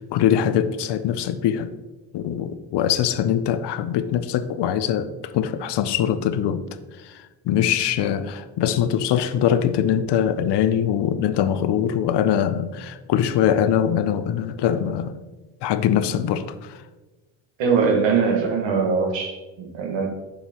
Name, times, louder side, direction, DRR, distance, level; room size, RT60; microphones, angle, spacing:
voice 1, 0.0-1.7 2.1-6.6 7.0-15.1 15.6-16.8, left 9 dB, 60° left, 12 dB, 0.6 m, -22 dB
voice 2, 17.6-20.1, right 5 dB, 75° right, 2 dB, 1.5 m, -21 dB
7.0 x 6.5 x 2.9 m, 1.2 s
cardioid pair, 95°, 46 cm